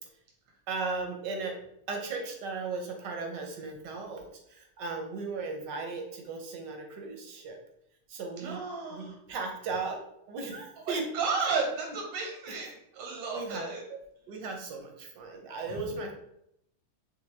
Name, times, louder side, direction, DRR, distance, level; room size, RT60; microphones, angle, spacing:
voice 1, 0.7-1.5 1.9-7.6 8.1-8.6 8.9-10.0 10.3-11.1 13.3-13.7 14.3-16.1, right 4 dB, 65° right, 3 dB, 1.2 m, -36 dB
voice 2, 8.4-9.2 10.9-13.8, right 4 dB, 90° right, 0 dB, 1.9 m, -33 dB
6.0 x 2.3 x 3.3 m, 0.75 s
omnidirectional pair, 2.4 m